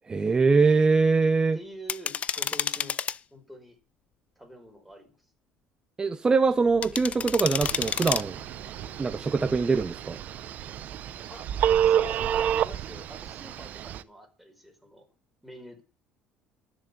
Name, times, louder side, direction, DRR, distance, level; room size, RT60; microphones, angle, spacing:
voice 1, 0.1-1.6 6.0-8.4 9.0-10.2, right 4 dB, 25° right, 0.9 m, -23 dB
voice 2, 1.5-3.0 3.3-3.8 4.4-5.2 11.3-11.5 11.8-15.1 15.4-15.8, equal, ahead, 5.0 m, -46 dB
sound 1, 1.9-3.2 6.8-8.2, left 8 dB, 45° left, 0.6 m, -29 dB
sound 2, 6.4-13.4, right 9 dB, 75° right, 3.2 m, -47 dB
Telephone, 7.6-14.0, right 9 dB, 60° right, 0.8 m, -29 dB
12.5 x 7.4 x 8.4 m
supercardioid pair, 95°, 3 cm